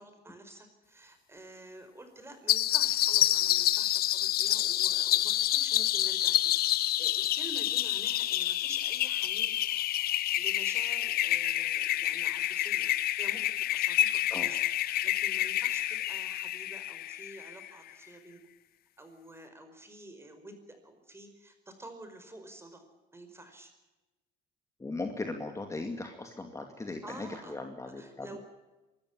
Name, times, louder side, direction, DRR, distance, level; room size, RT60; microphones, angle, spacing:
voice 1, 0.0-9.9 10.4-12.9 13.2-18.4 19.0-22.8 23.1-23.7 27.0-27.6 28.0-28.4, right 1 dB, 15° right, 7 dB, 5.0 m, -49 dB
sound 1, 2.5-17.7, left 14 dB, 65° left, 0.6 m, -28 dB
voice 2, 24.8-28.4, left 2 dB, 15° left, 4 dB, 2.3 m, -38 dB
24.5 x 14.0 x 9.8 m, 1.1 s
cardioid pair, 110°, 17 cm